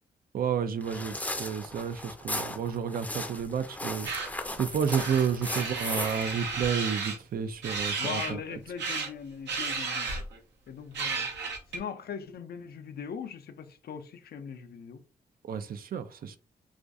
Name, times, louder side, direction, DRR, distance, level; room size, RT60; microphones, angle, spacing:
voice 1, 0.3-4.1 4.6-8.4 15.5-16.4, right 7 dB, 55° right, 0.4 m, -31 dB
sound 1, 0.8-6.7, left 1 dB, 10° left, 0.5 m, -37 dB
sound 2, 4.0-4.3 4.9-7.2 7.6-8.3 8.8-9.1 9.5-10.4 10.9-11.8, right 4 dB, 75° right, 0.7 m, -33 dB
voice 2, 8.0-10.1 10.7-11.3 11.7-15.0, left 7 dB, 60° left, 0.5 m, -40 dB
2.4 x 2.2 x 2.5 m
supercardioid pair, 45°, 18 cm